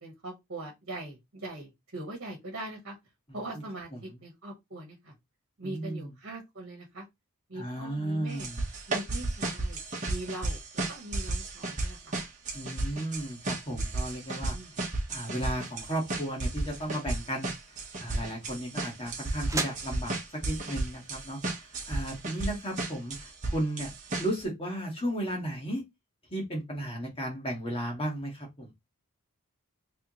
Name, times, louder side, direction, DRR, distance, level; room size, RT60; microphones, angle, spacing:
voice 1, 0.0-2.9 3.3-5.1 5.6-7.0 7.5-8.5 8.9-12.1 14.4-14.7, right 2 dB, 55° right, 1.5 m, -41 dB
voice 2, 5.6-6.1 7.5-8.6 12.5-14.6 15.1-20.2 20.4-23.9 24.2-25.8 26.3-28.7, right 1 dB, 25° left, 1.8 m, -34 dB
sound 1, 8.4-24.4, right 2 dB, 35° right, 1.3 m, -33 dB
sound 2, 16.8-22.7, right 3 dB, 15° right, 0.5 m, -42 dB
3.5 x 3.5 x 3.0 m
head